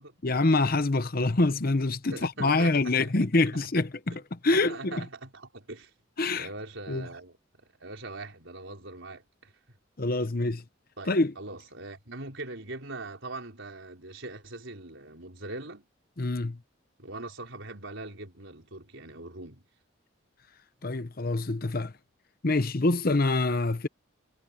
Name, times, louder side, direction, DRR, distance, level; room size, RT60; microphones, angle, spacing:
voice 1, 0.2-5.0 6.2-6.5 6.9-7.1 10.0-10.6 11.1-11.3 16.2-16.6 20.8-21.9 22.4-23.9, left 2 dB, 45° left, 0.9 m, -26 dB
voice 2, 2.1-3.1 3.5-3.8 4.1-4.2 4.5-5.9 6.4-9.5 11.0-15.9 17.0-19.7, right 2 dB, 65° right, 4.6 m, -42 dB
head